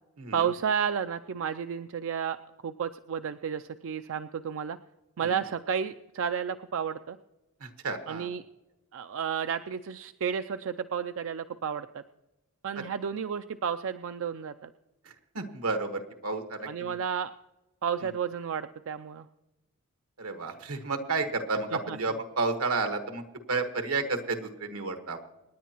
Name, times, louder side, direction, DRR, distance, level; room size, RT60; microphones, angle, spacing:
voice 1, 0.3-2.4 2.6-4.8 5.2-7.2 8.1-8.4 8.9-12.0 12.6-14.7 16.7-17.3 17.8-19.3 21.7-22.0, right 7 dB, 65° right, 9 dB, 0.4 m, -32 dB
voice 2, 7.6-8.3 15.0-17.0 20.2-23.2 23.5-25.2, right 3 dB, 90° right, 7 dB, 1.5 m, -31 dB
27.0 x 10.0 x 3.0 m, 1.0 s
head